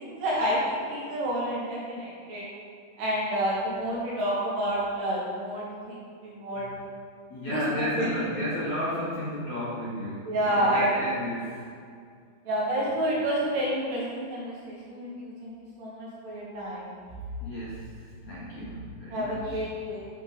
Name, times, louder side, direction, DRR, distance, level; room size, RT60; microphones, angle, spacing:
voice 1, 0.0-2.5 3.0-6.7 7.5-7.6 7.9-8.1 10.3-10.9 12.4-15.5 15.8-16.9 18.6-18.7 19.1-20.1, right 1 dB, 75° right, -6 dB, 4.3 m, -29 dB
voice 2, 7.3-11.6 17.4-19.7, equal, 60° left, -8 dB, 2.0 m, -33 dB
12.0 x 6.1 x 4.1 m, 2.2 s
omnidirectional pair, 4.9 m